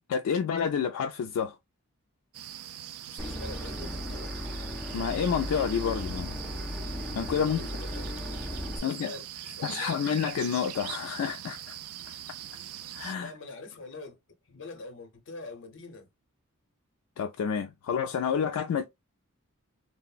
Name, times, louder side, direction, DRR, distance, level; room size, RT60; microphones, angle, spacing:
voice 1, 0.1-1.6 4.9-6.4 7.1-7.7 8.8-9.1 9.6-11.8 12.9-13.3 17.2-18.8, left 7 dB, 75° left, 0.3 m, -29 dB
sound 1, 2.3-13.1, right 11 dB, 75° right, 0.3 m, -42 dB
voice 2, 3.0-4.4 7.3-8.1 8.4-10.1 13.1-14.2 14.4-16.1, left 3 dB, 60° left, 0.7 m, -45 dB
Boat Water vehicle / Engine, 3.2-8.8, left 1 dB, ahead, 0.5 m, -36 dB
3.3 x 2.0 x 2.3 m
head